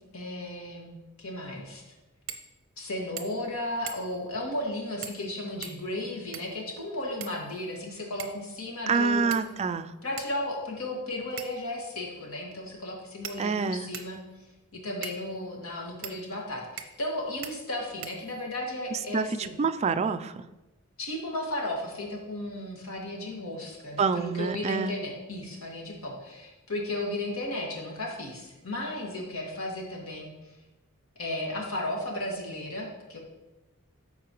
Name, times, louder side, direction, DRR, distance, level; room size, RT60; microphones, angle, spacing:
voice 1, 0.1-1.8 2.8-9.3 10.0-14.2 14.7-19.6 21.0-30.3 31.2-33.2, left 1 dB, 70° left, -1 dB, 1.9 m, -34 dB
sound 1, 2.3-2.5 2.8-2.9 3.2-3.5 3.9-4.2 5.0-5.3 5.6-6.6 7.2-7.8 8.2-8.5 9.3-9.7 10.2-10.3 11.4-11.7 12.5-12.6 13.2-14.2 15.0-15.2 16.0-16.2 16.8-17.1 17.4-17.5 18.0-18.6, right 9 dB, 60° right, 0.6 m, -41 dB
voice 2, 8.9-9.9 13.4-13.9 19.1-20.4 24.0-24.9, right 5 dB, 30° right, 10 dB, 0.3 m, -27 dB
13.0 x 4.6 x 3.0 m, 1.0 s
head